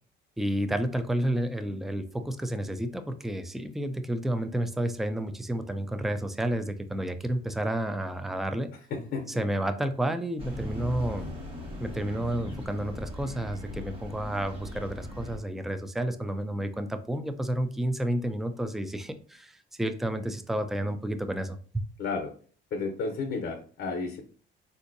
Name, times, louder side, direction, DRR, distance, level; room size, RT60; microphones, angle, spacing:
voice 1, 0.4-8.7 9.4-11.3 11.8-21.8, right 1 dB, ahead, 9 dB, 0.3 m, -31 dB
voice 2, 8.9-9.4 22.0-22.3 22.7-24.2, left 4 dB, 70° left, 3 dB, 0.7 m, -32 dB
sound 1, 10.4-15.4, left 1 dB, 25° right, 1.3 m, -39 dB
3.7 x 2.6 x 2.5 m, 0.43 s
cardioid pair, 90°, 20 cm